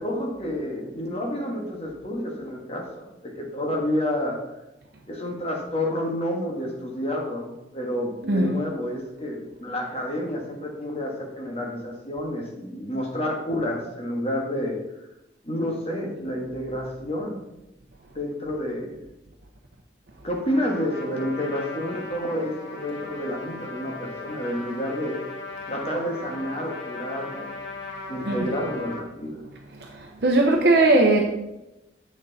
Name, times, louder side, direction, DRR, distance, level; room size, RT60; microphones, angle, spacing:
voice 1, 0.0-4.4 5.1-14.8 15.4-17.4 18.1-18.9 20.2-25.2 25.7-27.6 28.1-29.4, left 1 dB, 35° left, 0 dB, 1.7 m, -29 dB
voice 2, 8.2-8.6 28.3-28.4 30.2-31.2, right 2 dB, 60° right, 0 dB, 0.8 m, -18 dB
Trumpet, 20.5-29.0, left 3 dB, 85° left, 1.7 m, -38 dB
8.1 x 6.5 x 4.1 m, 0.94 s
head